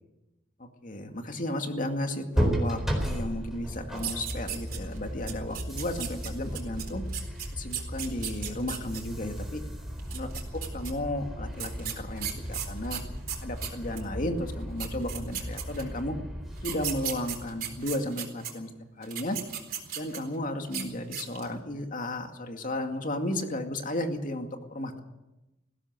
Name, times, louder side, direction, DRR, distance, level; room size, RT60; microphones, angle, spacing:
voice 1, 0.8-7.0 7.5-9.6 10.2-10.3 10.7-13.0 13.4-16.2 16.6-18.7 19.0-19.4 20.0-25.0, left 1 dB, 45° left, 5 dB, 2.3 m, -34 dB
sound 1, 2.3-18.1, equal, ahead, 4.4 m, -35 dB
sound 2, 3.9-5.0 5.3-9.0 10.0-10.9 11.6-14.1 14.5-14.6 14.8-16.0 16.6-18.5 19.0-20.4 20.7-20.8 21.1-21.5, right 10 dB, 50° right, 4.1 m, -36 dB
19.5 x 16.5 x 8.1 m, 1.0 s
head